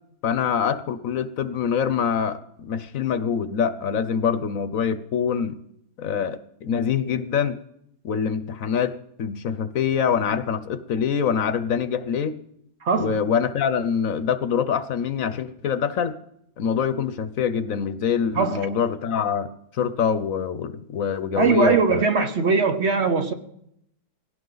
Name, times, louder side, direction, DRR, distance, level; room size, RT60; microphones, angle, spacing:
voice 1, 0.2-5.6 6.0-7.6 8.0-12.4 13.0-16.2 16.6-19.5 19.7-22.0, left 7 dB, 65° left, 1.1 m, -25 dB
voice 2, 12.8-13.2 18.3-18.6 21.4-23.3, right 4 dB, 50° right, 1.1 m, -20 dB
19.5 x 16.5 x 4.0 m
omnidirectional pair, 1.6 m